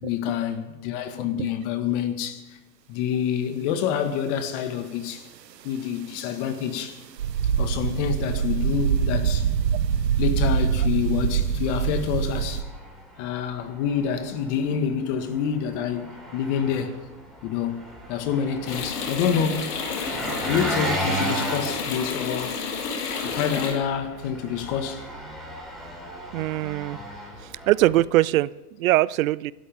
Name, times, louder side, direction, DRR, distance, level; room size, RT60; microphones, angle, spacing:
voice 1, 0.0-2.4 2.9-5.3 5.6-7.0 7.6-9.5 10.2-12.7 13.2-17.0 17.4-17.8 18.1-19.8 20.4-22.6 23.2-25.0, left 8 dB, 45° left, 1.8 m, -27 dB
sound 1, 7.2-12.6, right 8 dB, 90° right, 1.2 m, -24 dB
Engine, 12.3-28.1, right 1 dB, ahead, 4.3 m, -35 dB
sound 2, 18.7-23.7, left 5 dB, 70° left, 3.9 m, -30 dB
voice 2, 26.3-27.0 27.7-28.5 28.8-29.5, right 16 dB, 60° right, 0.5 m, -21 dB
24.5 x 12.5 x 3.6 m
hypercardioid pair, 125°, 49 cm